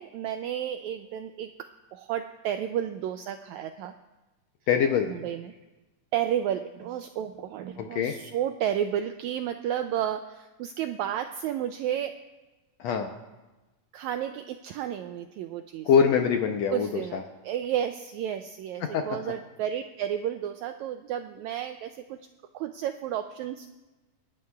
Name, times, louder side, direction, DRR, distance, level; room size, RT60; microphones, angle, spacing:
voice 1, 0.0-3.9 5.1-5.6 6.1-12.1 13.9-15.9 16.7-22.2 22.5-23.7, right 10 dB, 85° right, 8 dB, 1.6 m, -32 dB
voice 2, 4.7-5.1 7.8-8.1 12.8-13.1 15.8-17.2 18.8-19.0, left 7 dB, 75° left, 4 dB, 1.6 m, -24 dB
27.0 x 11.0 x 2.3 m, 1.1 s
omnidirectional pair, 3.8 m